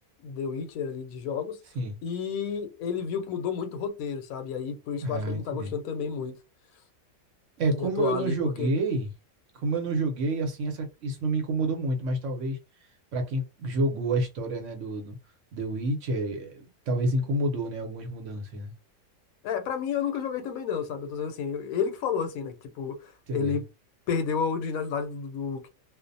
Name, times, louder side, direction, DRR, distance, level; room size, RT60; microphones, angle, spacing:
voice 1, 0.2-1.6 2.0-6.3 7.8-8.7 19.4-23.6 24.1-25.7, left 6 dB, 80° left, 1.0 m, -31 dB
voice 2, 5.0-5.7 7.6-9.1 9.5-12.6 13.1-15.2 15.5-18.7 23.3-23.6, right 2 dB, 65° right, 1.0 m, -29 dB
2.4 x 2.0 x 2.6 m
omnidirectional pair, 1.5 m